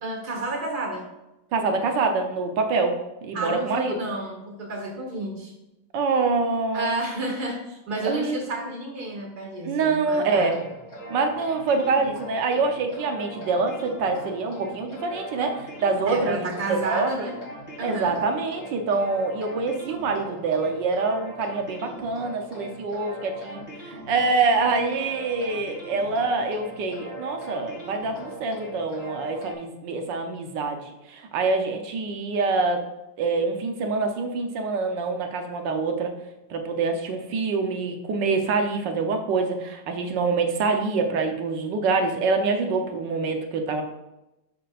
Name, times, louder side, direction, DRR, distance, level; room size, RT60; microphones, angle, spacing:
voice 1, 0.0-1.0 3.3-5.5 6.7-10.6 16.1-17.4 17.8-18.2, right 2 dB, 65° right, 1 dB, 2.5 m, -31 dB
voice 2, 1.5-4.0 5.9-6.9 8.0-8.4 9.6-10.6 11.1-17.3 17.8-32.8 33.2-36.1 36.5-43.8, right 4 dB, 85° right, 4 dB, 1.7 m, -25 dB
sound 1, 10.4-29.5, equal, 20° left, 3.1 m, -40 dB
12.0 x 6.7 x 2.5 m, 0.95 s
omnidirectional pair, 1.9 m